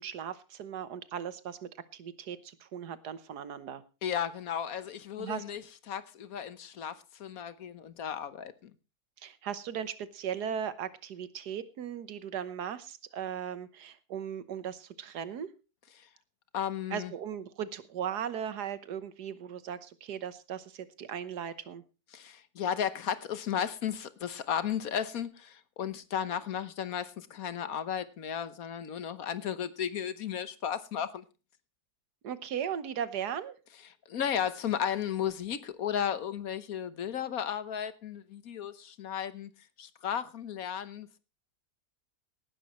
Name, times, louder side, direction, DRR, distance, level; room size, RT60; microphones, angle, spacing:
voice 1, 0.0-3.8 5.2-5.4 9.2-15.5 16.9-21.8 32.2-33.6, right 8 dB, 85° right, 1.6 m, -37 dB
voice 2, 4.0-5.6 5.9-8.7 16.0-16.1 16.5-17.1 22.1-31.2 34.1-39.5 39.8-41.2, left 9 dB, 65° left, 1.4 m, -34 dB
18.0 x 11.0 x 3.1 m
omnidirectional pair, 1.7 m